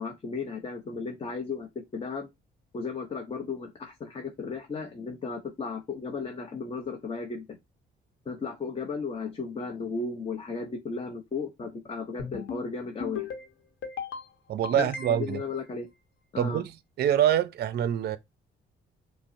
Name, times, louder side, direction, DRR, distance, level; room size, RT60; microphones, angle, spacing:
voice 1, 0.0-2.3 2.7-7.6 8.3-13.3 14.8-15.9 16.3-16.6, left 4 dB, 30° left, 0.7 m, -35 dB
sound 1, 12.2-12.6 13.0-13.5 13.8-14.3 14.6-15.4, left 5 dB, 80° left, 0.9 m, -36 dB
voice 2, 14.5-15.4 16.4-16.7 17.0-18.2, right 10 dB, 55° right, 0.4 m, -25 dB
5.2 x 2.1 x 2.6 m
cardioid pair, 90°, 20 cm